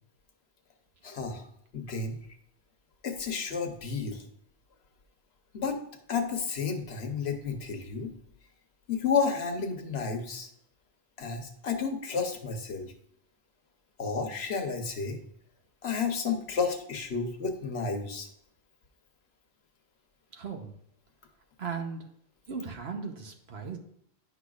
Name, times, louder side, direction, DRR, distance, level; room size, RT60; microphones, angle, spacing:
voice 1, 1.0-1.5 1.7-2.2 3.0-4.3 5.5-5.8 6.1-8.1 8.9-10.5 11.2-12.9 14.0-15.2 15.8-18.3, left 5 dB, 70° left, 5 dB, 1.2 m, -31 dB
voice 2, 20.3-20.7 21.6-22.1 22.5-23.8, right 5 dB, 70° right, 4 dB, 1.2 m, -37 dB
9.9 x 5.9 x 2.4 m, 0.70 s
omnidirectional pair, 1.1 m